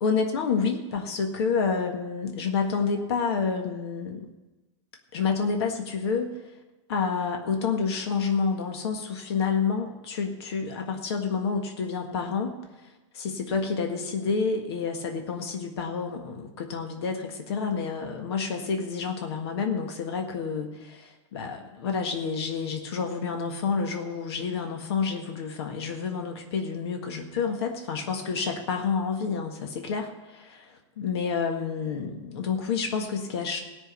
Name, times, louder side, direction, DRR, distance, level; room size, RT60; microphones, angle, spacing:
voice 1, 0.0-4.3 5.1-6.4 6.9-12.5 13.1-33.6, left 5 dB, 60° left, 3 dB, 1.7 m, -29 dB
17.5 x 6.2 x 8.3 m, 1.1 s
supercardioid pair, 180°, 15 cm